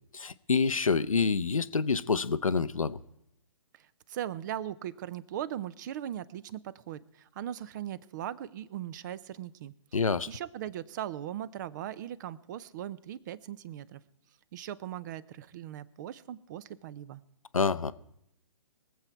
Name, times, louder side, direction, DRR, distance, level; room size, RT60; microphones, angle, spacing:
voice 1, 0.1-3.0 9.9-10.3 17.5-17.9, left 5 dB, 85° left, 0.7 m, -27 dB
voice 2, 3.7-9.7 10.3-14.0 14.5-17.2, right 11 dB, 35° right, 0.6 m, -39 dB
23.0 x 7.7 x 4.6 m
figure-of-eight pair, 130°, 17 cm